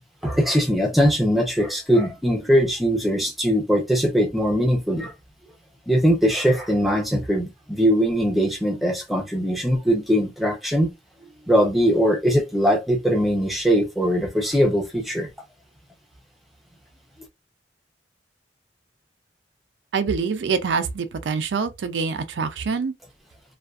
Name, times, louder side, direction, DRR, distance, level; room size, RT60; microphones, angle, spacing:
voice 1, 0.2-5.1 5.9-10.9 11.5-15.3, equal, ahead, 0.6 m, -21 dB
voice 2, 19.9-22.9, right 5 dB, 85° right, 0.4 m, -25 dB
2.5 x 2.3 x 2.3 m
head